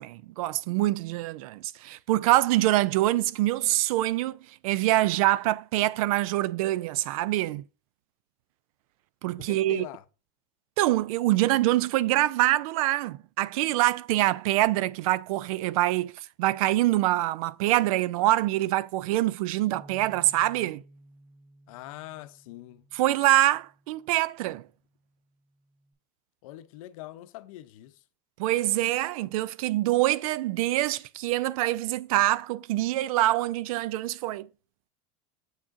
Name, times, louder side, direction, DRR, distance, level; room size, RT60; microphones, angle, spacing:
voice 1, 0.0-4.4 4.6-7.6 9.2-9.8 10.8-16.1 16.4-20.8 22.9-24.6 28.4-34.5, right 16 dB, 85° right, 0.4 m, -25 dB
voice 2, 9.4-10.0 21.7-22.8 26.4-28.0, left 14 dB, 80° left, 0.6 m, -43 dB
Bass guitar, 19.7-24.1 24.8-25.9, right 1 dB, 30° right, 1.9 m, -55 dB
7.3 x 6.1 x 2.6 m
cardioid pair, 175°, 18 cm